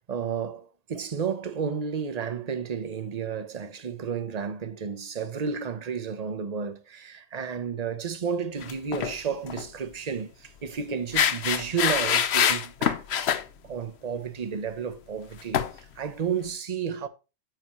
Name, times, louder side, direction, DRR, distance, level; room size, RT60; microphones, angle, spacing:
voice 1, 0.1-13.2 13.6-17.1, right 6 dB, 40° right, 0.9 m, -32 dB
sound 1, 8.6-9.2 9.5-9.6 11.1-13.4 15.5-15.7, left 9 dB, 70° left, 1.0 m, -24 dB
9.3 x 7.8 x 3.1 m
omnidirectional pair, 1.2 m